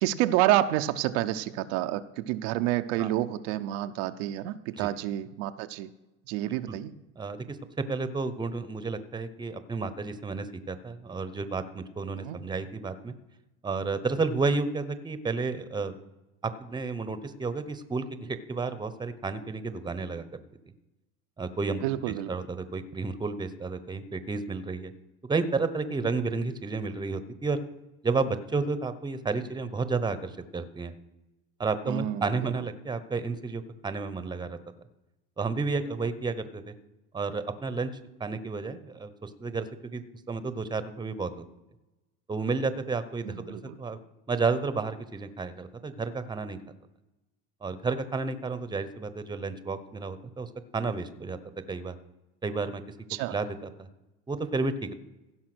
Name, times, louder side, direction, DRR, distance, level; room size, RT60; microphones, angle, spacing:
voice 1, 0.0-5.9 6.3-6.9 12.2-12.4 21.8-22.3 31.9-32.3 43.3-43.8 53.1-53.3, right 14 dB, 80° right, 8 dB, 0.7 m, -28 dB
voice 2, 7.2-13.1 13.6-15.9 16.4-20.3 21.4-21.8 22.3-24.9 25.2-27.6 28.0-30.9 31.6-34.6 35.4-36.7 37.1-37.9 38.2-41.4 42.3-44.0 44.3-46.6 47.6-51.4 51.7-51.9 52.4-52.8 53.3-53.9 54.3-54.9, right 4 dB, 15° right, 12 dB, 0.9 m, -31 dB
16.0 x 5.7 x 6.1 m, 1.0 s
supercardioid pair, 105°, 31 cm